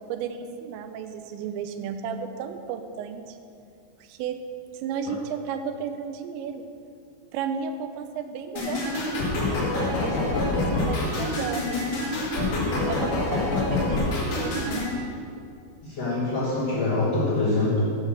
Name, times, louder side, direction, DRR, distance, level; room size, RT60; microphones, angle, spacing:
voice 1, 0.1-3.4 4.0-4.4 4.7-6.7 7.3-12.5 12.9-14.9, right 7 dB, 90° right, 7 dB, 2.9 m, -34 dB
sound 1, 8.6-14.9, left 2 dB, 55° left, 2.8 m, -26 dB
voice 2, 15.8-18.0, left 2 dB, 75° left, -7 dB, 1.4 m, -24 dB
8.2 x 6.4 x 7.2 m, 2.4 s
omnidirectional pair, 5.1 m